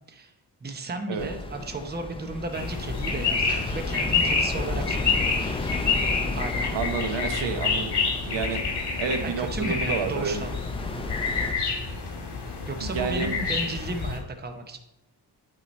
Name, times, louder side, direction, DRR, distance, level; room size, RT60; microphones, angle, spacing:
voice 1, 0.6-5.7 6.3-6.7 9.2-10.5 12.7-14.8, right 2 dB, 20° right, 5 dB, 0.7 m, -34 dB
sound 1, 1.2-11.5, left 2 dB, 15° left, 0.4 m, -34 dB
sound 2, 2.5-14.2, left 4 dB, 65° left, 2.4 m, -28 dB
voice 2, 6.7-8.0 8.2-8.6 9.0-10.4 12.8-13.4, right 5 dB, 80° right, 6 dB, 1.0 m, -29 dB
8.7 x 4.8 x 4.2 m, 0.92 s
wide cardioid pair, 130°, 44 cm